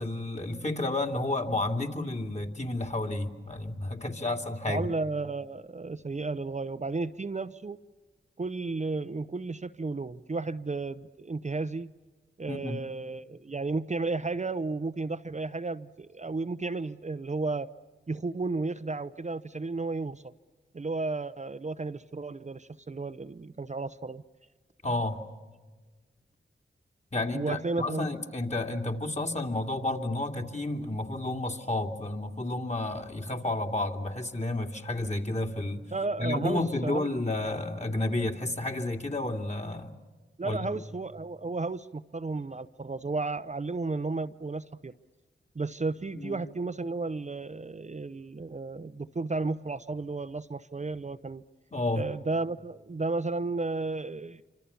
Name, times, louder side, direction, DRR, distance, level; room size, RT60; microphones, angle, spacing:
voice 1, 0.0-4.8 12.5-12.8 24.8-25.2 27.1-35.8 36.2-40.0 40.4-40.7 46.1-46.4 51.7-52.1, left 2 dB, 35° left, 3 dB, 2.6 m, -31 dB
voice 2, 4.7-7.8 8.4-11.9 12.4-17.7 18.1-20.3 20.7-24.2 27.3-28.1 35.9-37.1 40.4-44.9 45.6-51.4 51.9-54.4, right 3 dB, 35° right, 10 dB, 0.7 m, -33 dB
26.5 x 26.0 x 7.0 m, 1.3 s
cardioid pair, 50°, 21 cm